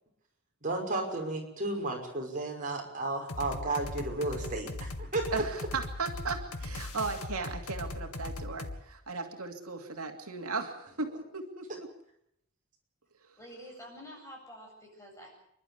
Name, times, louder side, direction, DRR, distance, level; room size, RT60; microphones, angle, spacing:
voice 1, 0.6-5.4, right 2 dB, 35° right, 1 dB, 5.7 m, -33 dB
sound 1, 3.3-8.8, left 2 dB, 85° left, 2.0 m, -39 dB
voice 2, 5.3-11.9, right 4 dB, 80° right, 3 dB, 2.6 m, -36 dB
voice 3, 13.4-15.3, equal, 15° left, -1 dB, 7.9 m, -48 dB
29.5 x 12.0 x 8.3 m, 0.75 s
head